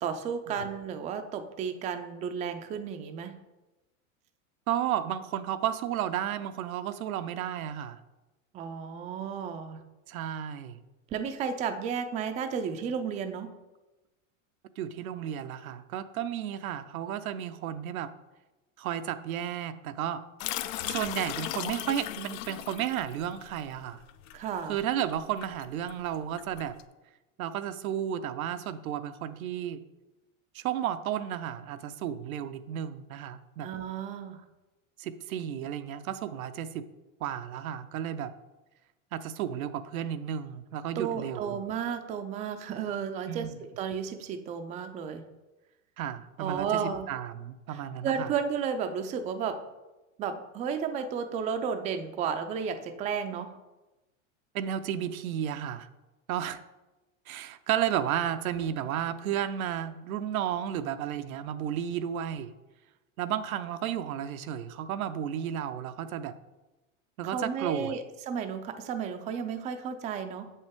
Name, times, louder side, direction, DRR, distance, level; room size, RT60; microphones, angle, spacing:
voice 1, 0.0-3.3 8.5-9.8 11.1-13.5 24.3-24.8 33.6-34.4 41.0-45.2 46.4-47.1 47.7-49.6 50.2-53.6 67.2-70.5, right 7 dB, 20° right, 7 dB, 0.3 m, -33 dB
voice 2, 4.7-8.0 10.1-10.8 14.8-18.1 18.8-20.2 20.9-24.0 24.7-26.8 27.4-29.8 30.5-33.7 35.0-36.9 37.2-38.3 39.1-41.6 43.3-43.6 46.0-46.8 47.1-48.3 54.5-55.9 56.3-56.6 57.3-62.5 63.2-66.4 67.2-67.9, right 10 dB, 90° right, 11 dB, 0.6 m, -33 dB
sound 1, 20.4-26.8, left 13 dB, 70° left, 0.5 m, -37 dB
7.1 x 5.5 x 3.5 m, 1.1 s
supercardioid pair, 115°, 41 cm